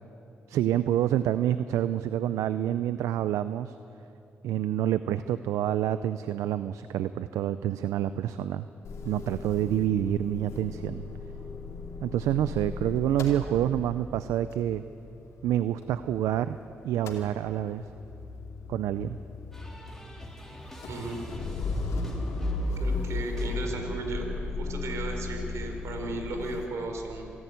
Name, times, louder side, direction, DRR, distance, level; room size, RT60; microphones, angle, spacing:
voice 1, 0.5-3.8 4.4-8.6 9.0-11.0 12.0-14.8 15.4-16.6 16.8-17.8 18.7-19.2, right 11 dB, 90° right, 13 dB, 0.4 m, -27 dB
Motor vehicle (road) / Engine starting / Idling, 8.8-16.6 16.8-26.7, left 3 dB, 80° left, 2.7 m, -36 dB
sound 1, 19.5-24.2, equal, 10° left, 4.0 m, -48 dB
voice 2, 20.9-21.3 22.8-24.3 24.6-27.2, right 2 dB, 75° right, 3 dB, 4.1 m, -35 dB
26.5 x 11.0 x 9.5 m, 2.8 s
supercardioid pair, 60°, 5 cm